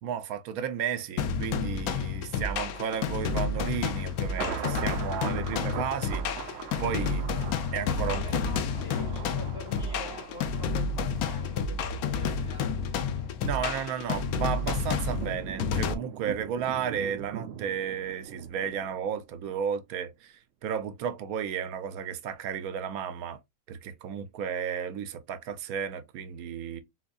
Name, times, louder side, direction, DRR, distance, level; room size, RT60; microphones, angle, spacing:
voice 1, 0.0-7.3 7.7-8.4 13.4-23.4 23.7-26.8, right 8 dB, 85° right, 1.1 m, -33 dB
sound 1, 1.2-15.9, left 5 dB, 85° left, 1.1 m, -30 dB
Thunder, 2.5-19.6 19.9-20.0, right 9 dB, 65° right, 0.6 m, -42 dB
voice 2, 7.8-12.7, left 1 dB, 55° left, 1.9 m, -45 dB
4.1 x 2.6 x 2.3 m
omnidirectional pair, 1.5 m